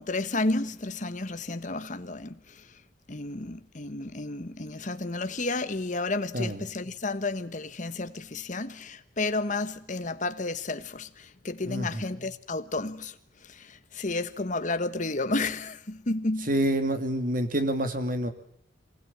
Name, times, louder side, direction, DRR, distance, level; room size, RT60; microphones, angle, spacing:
voice 1, 0.0-2.7 3.1-13.2 13.4-16.5, left 2 dB, 40° left, 1.3 m, -32 dB
voice 2, 11.6-12.0 16.5-18.3, right 1 dB, 45° right, 2.7 m, -27 dB
24.5 x 19.5 x 8.8 m
head